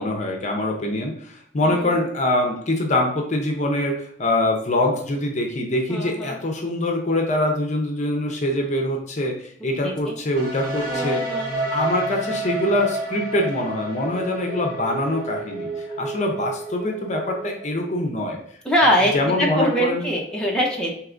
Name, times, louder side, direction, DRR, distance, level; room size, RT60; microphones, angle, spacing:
voice 1, 0.0-11.2 11.6-18.4 19.1-20.1, left 1 dB, 40° left, 2 dB, 0.6 m, -24 dB
voice 2, 1.6-1.9 5.9-6.4 9.8-10.1 10.9-11.5 18.6-20.9, equal, 5° left, -3 dB, 0.6 m, -23 dB
sound 1, 10.4-18.1, right 1 dB, 55° right, 0.8 m, -30 dB
4.6 x 2.9 x 2.5 m, 0.65 s
head